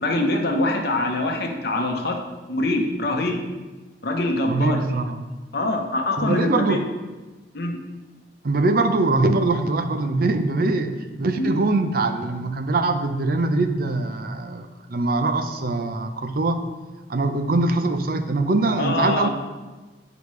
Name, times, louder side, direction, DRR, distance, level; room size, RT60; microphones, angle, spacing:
voice 1, 0.0-2.2 2.5-3.4 4.0-4.8 5.5-6.8 7.5-7.8 11.4-11.5 18.8-19.3, left 2 dB, 60° left, 2 dB, 0.9 m, -24 dB
voice 2, 4.5-5.2 6.2-6.8 8.4-10.9 11.2-16.6 17.1-19.3, right 2 dB, 55° right, 8 dB, 0.6 m, -22 dB
9.7 x 5.0 x 3.2 m, 1.2 s
head